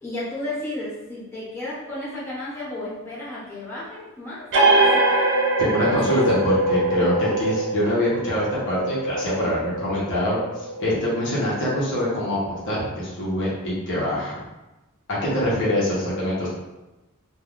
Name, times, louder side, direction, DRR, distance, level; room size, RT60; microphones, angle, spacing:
voice 1, 0.0-5.2 5.8-6.2, left 1 dB, 10° left, -10 dB, 1.0 m, -33 dB
sound 1, 4.5-11.7, right 2 dB, 60° right, 0.6 m, -23 dB
voice 2, 5.6-10.4 10.8-14.4 15.1-16.5, equal, 60° left, -7 dB, 0.9 m, -24 dB
3.3 x 2.3 x 2.4 m, 1.0 s
head